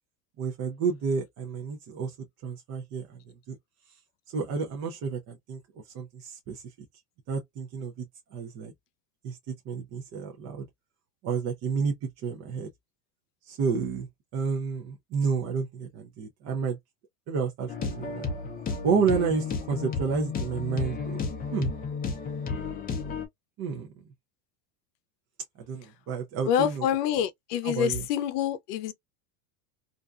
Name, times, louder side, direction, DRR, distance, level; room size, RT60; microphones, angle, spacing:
voice 1, 0.4-2.2 2.4-3.2 3.5-3.6 4.3-5.6 5.9-6.6 7.3-8.1 8.3-8.7 9.2-10.7 11.2-12.7 13.5-14.1 14.3-16.8 17.3-18.3 18.8-21.3 21.5-21.7 23.6-23.9 25.7-26.8 27.6-28.0, right 5 dB, 35° right, 0.5 m, -30 dB
sound 1, 17.7-23.3, left 5 dB, 20° left, 0.5 m, -32 dB
voice 2, 26.5-28.9, left 9 dB, 75° left, 0.7 m, -26 dB
2.5 x 2.2 x 2.3 m
supercardioid pair, 125°, 48 cm